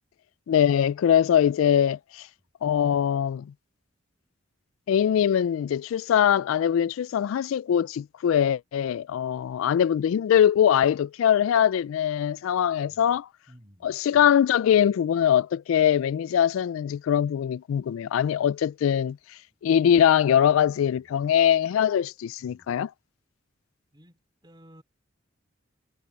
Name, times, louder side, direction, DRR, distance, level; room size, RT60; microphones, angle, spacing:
voice 1, 0.5-2.3 2.6-3.5 4.9-13.3 13.8-22.9, left 9 dB, 80° left, 0.3 m, -22 dB
voice 2, 12.8-13.1 13.5-14.3 20.8-21.1 22.4-22.8 23.9-24.8, equal, 20° right, 4.1 m, -55 dB
head